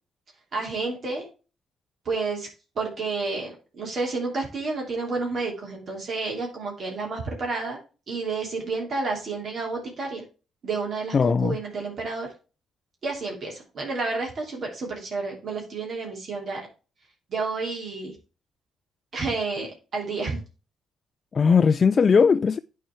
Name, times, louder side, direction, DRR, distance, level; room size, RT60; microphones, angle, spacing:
voice 1, 0.5-1.3 2.0-2.5 2.8-7.8 8.1-10.2 10.6-12.3 13.0-16.6 17.3-18.1 19.1-20.4, right 3 dB, 50° right, 3.0 m, -30 dB
voice 2, 11.1-11.6 21.3-22.6, left 5 dB, 40° left, 0.3 m, -19 dB
9.2 x 4.4 x 4.6 m
cardioid pair, 90°, 0 cm